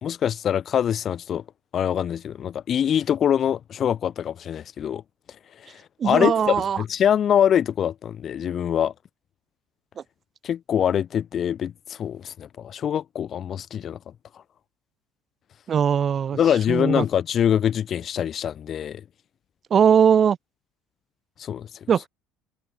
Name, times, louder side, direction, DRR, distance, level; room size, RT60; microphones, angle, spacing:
voice 1, 0.0-1.4 1.7-5.0 6.0-8.9 10.4-14.0 16.3-19.0 21.4-21.7, left 9 dB, 45° left, 1.7 m, -24 dB
voice 2, 6.0-6.8 15.7-16.4 16.7-17.0 19.7-20.4 21.9-22.0, right 8 dB, 40° right, 1.1 m, -19 dB
figure-of-eight pair, 60°, 0 cm